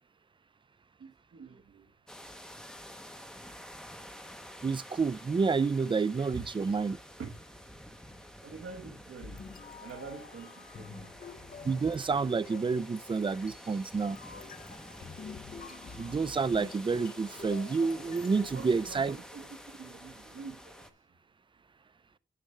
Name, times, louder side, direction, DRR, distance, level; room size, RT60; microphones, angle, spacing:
voice 1, 1.0-1.9 6.3-6.4 7.2-7.4 8.4-9.4 9.8-11.1 18.5-20.9, right 5 dB, 80° right, 1.2 m, -46 dB
sound 1, 2.1-20.9, equal, 5° left, 0.7 m, -49 dB
voice 2, 4.6-7.0 11.6-14.2 16.0-19.2, right 4 dB, 25° right, 0.4 m, -29 dB
sound 2, 9.2-19.5, left 5 dB, 45° left, 0.7 m, -48 dB
9.8 x 6.8 x 3.2 m
wide cardioid pair, 160°, 21 cm